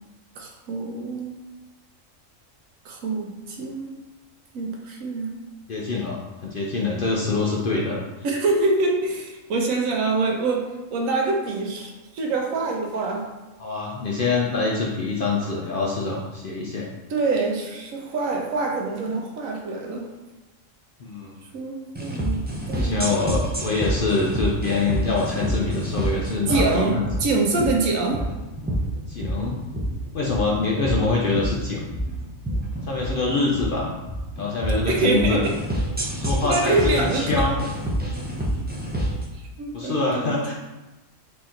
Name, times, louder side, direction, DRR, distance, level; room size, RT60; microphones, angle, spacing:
voice 1, 0.4-1.4 2.8-3.9 4.5-5.3 8.2-13.3 17.1-20.1 21.5-22.4 22.7-23.1 26.5-28.3 34.9-35.6 36.4-37.5 39.3-40.5, right 3 dB, 75° right, 1 dB, 1.1 m, -25 dB
voice 2, 5.7-8.0 13.6-16.9 21.0-21.4 22.8-27.0 29.1-29.6 30.1-31.8 32.8-33.9 34.4-35.4 36.1-37.7 39.7-40.5, left 3 dB, 60° left, -2 dB, 0.6 m, -25 dB
sound 1, 21.9-39.2, equal, 15° right, 0.3 m, -28 dB
4.1 x 2.9 x 3.7 m, 1.1 s
omnidirectional pair, 1.4 m